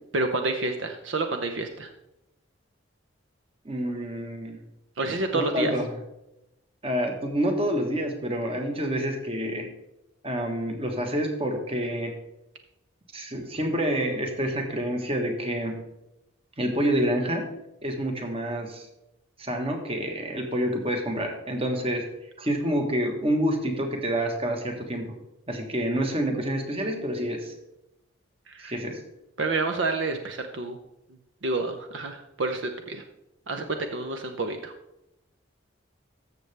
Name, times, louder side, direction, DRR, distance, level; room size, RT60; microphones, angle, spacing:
voice 1, 0.1-1.9 5.0-5.7 28.5-28.8 29.4-30.8 31.4-33.0 33.5-34.7, right 3 dB, 65° right, 6 dB, 0.7 m, -29 dB
voice 2, 3.6-4.6 5.3-5.9 6.8-9.7 10.2-12.2 13.1-15.8 16.6-17.5 17.8-18.9 19.4-22.1 22.4-25.1 25.5-27.5 28.6-29.0, equal, 30° right, 3 dB, 1.3 m, -28 dB
14.0 x 6.7 x 3.4 m, 0.89 s
head